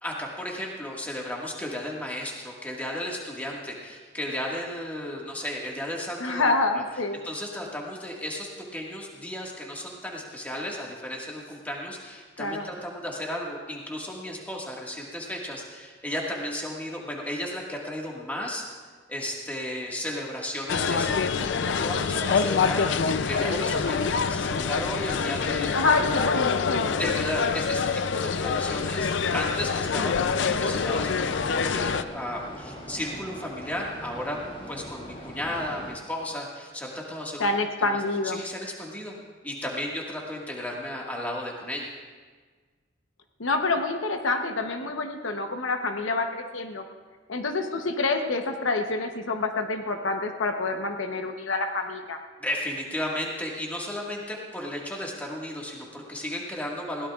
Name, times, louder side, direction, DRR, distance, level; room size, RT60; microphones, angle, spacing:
voice 1, 0.0-6.8 7.2-18.7 19.1-25.7 27.0-34.4 34.7-37.5 37.9-39.1 39.4-41.9 52.4-57.1, left 1 dB, 10° left, -2 dB, 1.7 m, -34 dB
voice 2, 6.2-7.2 12.4-12.6 25.7-27.0 37.4-38.4 43.4-46.8 47.3-52.2, left 3 dB, 75° left, 5 dB, 0.9 m, -27 dB
sound 1, 20.7-32.0, left 5 dB, 60° left, 0.4 m, -26 dB
sound 2, 29.9-36.0, equal, 25° left, 2.0 m, -41 dB
21.0 x 17.0 x 2.4 m, 1.5 s
head